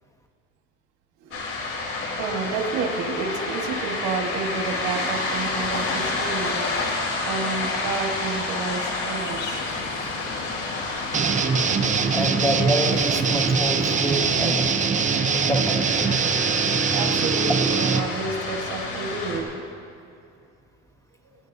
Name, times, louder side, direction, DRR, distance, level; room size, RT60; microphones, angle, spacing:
sound 1, 1.3-19.4, left 3 dB, 50° left, 3.3 m, -30 dB
voice 1, 2.2-6.7 7.3-9.6 11.9-12.3 16.9-19.6, right 4 dB, 90° right, 3 dB, 1.5 m, -30 dB
sound 2, 9.2-15.2, left 4 dB, 70° left, 1.9 m, -38 dB
sound 3, 11.1-18.0, right 5 dB, 25° right, 0.6 m, -22 dB
voice 2, 12.1-14.7 15.3-16.1, equal, 10° left, 3 dB, 1.2 m, -27 dB
19.0 x 16.0 x 2.7 m, 2.4 s
cardioid pair, 120°, 30 cm